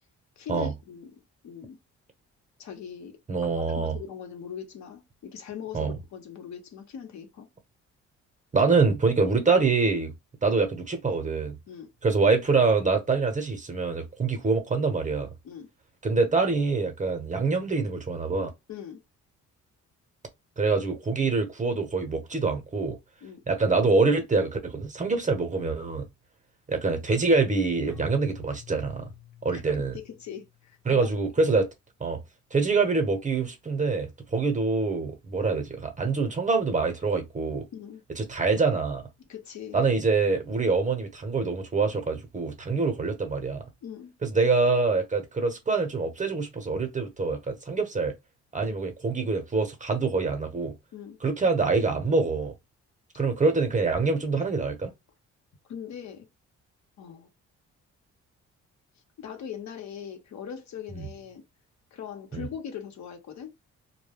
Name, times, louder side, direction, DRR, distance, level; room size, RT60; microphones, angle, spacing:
voice 1, 0.4-1.1 1.4-1.8 2.6-3.2 3.6-7.5 11.7-11.9 15.4-15.7 18.7-19.0 23.2-23.4 29.5-29.6 30.0-31.1 37.7-38.0 39.3-39.8 43.8-44.1 48.6-48.8 50.9-51.2 55.7-56.3 57.0-57.3 59.2-61.4 61.9-63.5, left 8 dB, 65° left, 0.9 m, -40 dB
voice 2, 3.3-4.0 5.7-6.0 8.5-10.1 10.4-11.6 12.0-15.3 16.0-18.5 20.6-23.0 23.5-26.0 26.7-29.0 29.4-29.9 30.8-31.7 32.0-32.2 32.5-37.6 38.2-39.0 39.7-43.6 44.2-48.1 48.5-50.7 51.2-52.5 53.2-54.9 60.9-61.1 62.3-62.5, right 4 dB, 25° right, 0.9 m, -25 dB
Keyboard (musical), 27.9-31.0, left 10 dB, 10° left, 0.3 m, -49 dB
2.2 x 2.2 x 3.4 m
cardioid pair, 90°, 30 cm